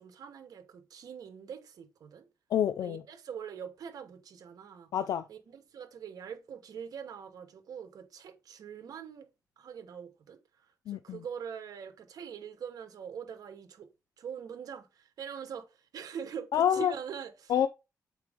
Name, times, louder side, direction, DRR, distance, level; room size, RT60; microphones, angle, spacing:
voice 1, 0.0-2.3 2.8-4.9 5.3-9.3 9.6-13.9 14.2-17.5, right 7 dB, 80° right, 1.2 m, -43 dB
voice 2, 2.5-3.0 4.9-5.3 10.9-11.2 16.5-16.9 17.5-17.7, left 9 dB, 90° left, 0.4 m, -27 dB
7.6 x 4.5 x 3.5 m
cardioid pair, 100°, 6 cm